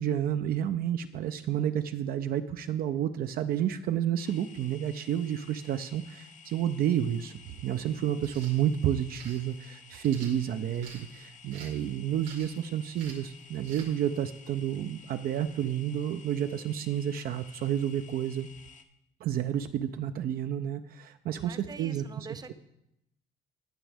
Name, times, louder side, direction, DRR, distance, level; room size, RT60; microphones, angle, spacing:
voice 1, 0.0-18.5 19.2-22.5, right 10 dB, 60° right, 8 dB, 0.5 m, -30 dB
sound 1, 4.2-18.8, left 5 dB, 50° left, 0.9 m, -53 dB
sound 2, 8.2-8.6 9.2-9.4 10.0-11.0 11.5-11.8 12.2-12.6 12.9-13.3 13.6-13.9, right 5 dB, 90° right, 2.3 m, -48 dB
voice 2, 21.3-22.5, right 4 dB, 25° right, 11 dB, 0.7 m, -46 dB
18.0 x 6.2 x 3.4 m, 0.83 s
cardioid pair, 110°, 17 cm